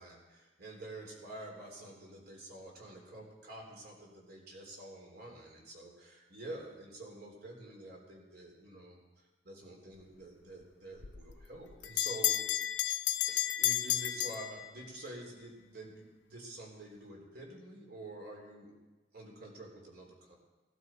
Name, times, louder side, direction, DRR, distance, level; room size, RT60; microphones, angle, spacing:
voice 1, 0.0-9.0 9.4-12.4 13.3-18.7 19.1-20.4, right 1 dB, 55° right, 0 dB, 3.9 m, -48 dB
Bell, 11.0-15.1, left 13 dB, 75° left, 0.7 m, -32 dB
19.0 x 12.5 x 4.6 m, 1.2 s
head